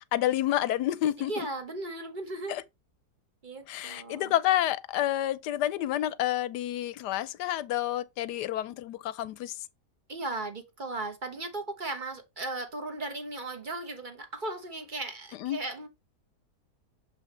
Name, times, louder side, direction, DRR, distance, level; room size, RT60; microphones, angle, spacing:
voice 1, 0.0-1.5 2.5-2.6 3.7-9.6 15.4-15.6, left 13 dB, 85° left, 1.2 m, -29 dB
voice 2, 1.2-2.6 3.4-4.3 10.1-15.9, right 2 dB, 30° right, 1.3 m, -36 dB
7.1 x 5.7 x 3.1 m
omnidirectional pair, 1.8 m